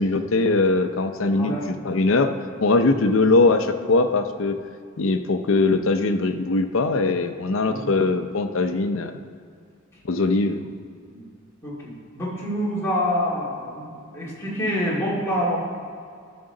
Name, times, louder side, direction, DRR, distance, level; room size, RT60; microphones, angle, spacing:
voice 1, 0.0-2.3 2.6-4.6 5.0-9.1 10.0-10.7, left 3 dB, 75° left, 8 dB, 0.6 m, -21 dB
voice 2, 1.3-1.7 7.7-7.9 11.1-11.2 11.6-15.6, equal, 15° left, -7 dB, 2.2 m, -26 dB
13.0 x 6.1 x 3.8 m, 2.3 s
head